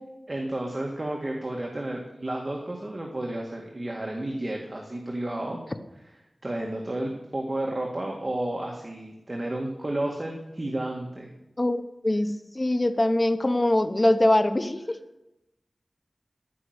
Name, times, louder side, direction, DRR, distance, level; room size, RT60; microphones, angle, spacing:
voice 1, 0.3-5.6 6.4-11.3, right 1 dB, 30° right, 0 dB, 2.0 m, -32 dB
voice 2, 11.6-12.3 12.5-15.0, left 1 dB, 30° left, 8 dB, 1.0 m, -23 dB
15.0 x 6.0 x 8.0 m, 0.91 s
wide cardioid pair, 80°, 0 cm